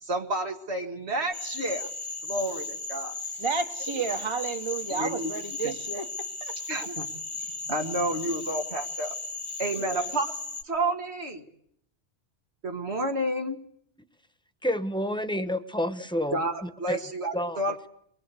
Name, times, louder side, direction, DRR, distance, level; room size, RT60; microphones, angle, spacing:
voice 1, 0.0-1.9 2.2-3.1 4.9-5.3 5.6-5.7 6.7-7.1 7.4-9.1 9.6-10.3 10.6-11.4 12.6-13.6 16.3-17.9, right 1 dB, 85° right, 2.1 m, -30 dB
Cricket / Frog, 1.3-10.6, left 3 dB, 30° left, 1.2 m, -36 dB
voice 2, 3.4-6.5 9.8-10.1, right 5 dB, 30° right, 1.0 m, -32 dB
voice 3, 14.6-17.0 17.3-17.8, equal, 5° left, 1.1 m, -30 dB
23.5 x 21.5 x 8.2 m
omnidirectional pair, 1.1 m